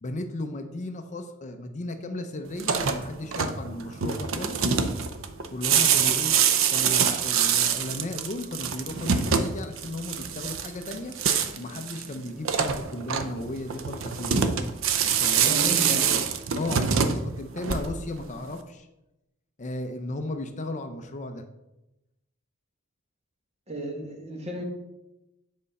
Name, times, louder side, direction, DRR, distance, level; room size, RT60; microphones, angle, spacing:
voice 1, 0.0-4.6 5.5-6.3 6.7-11.1 11.6-14.5 15.0-15.5 16.1-16.2 16.6-18.9 19.6-21.4, left 1 dB, 35° left, 6 dB, 0.5 m, -35 dB
sound 1, 2.5-18.2, right 7 dB, 65° right, 0.6 m, -25 dB
voice 2, 15.4-16.1 23.7-24.6, right 1 dB, 30° right, 1 dB, 1.4 m, -33 dB
7.7 x 4.1 x 5.3 m, 0.94 s
head